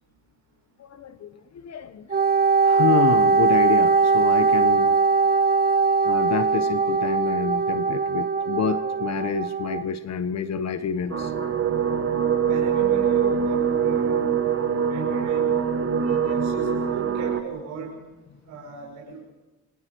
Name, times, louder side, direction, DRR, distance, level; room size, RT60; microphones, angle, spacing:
voice 1, 0.8-2.2 2.6-5.0 6.0-11.3 16.1-16.2, left 7 dB, 60° left, 10 dB, 1.3 m, -28 dB
Wind instrument woodwind instrument, 2.1-9.8, right 4 dB, 30° right, 1.2 m, -20 dB
sound 1, 11.1-17.4, right 7 dB, 45° right, 2.0 m, -23 dB
voice 2, 12.5-14.2 14.9-15.4 16.1-18.0 18.5-19.3, right 5 dB, 80° right, -2 dB, 6.2 m, -38 dB
28.5 x 26.5 x 4.7 m, 1.1 s
cardioid pair, 90°, 30 cm